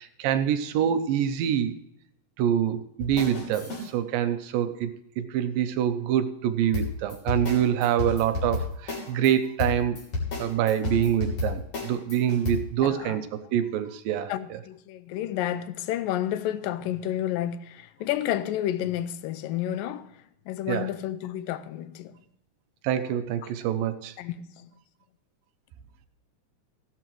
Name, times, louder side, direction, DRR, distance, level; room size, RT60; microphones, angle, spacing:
voice 1, 0.0-1.8 2.4-10.0 10.4-14.6 20.7-20.9 22.8-24.2, right 10 dB, 80° right, 2.4 m, -26 dB
sound 1, 3.0-3.9 6.7-9.3 9.6-12.5, left 3 dB, 50° left, 4.1 m, -31 dB
voice 2, 12.8-13.2 14.3-22.2 23.4-23.5 24.2-24.7, left 12 dB, 85° left, 2.3 m, -31 dB
15.5 x 11.5 x 3.0 m
omnidirectional pair, 4.0 m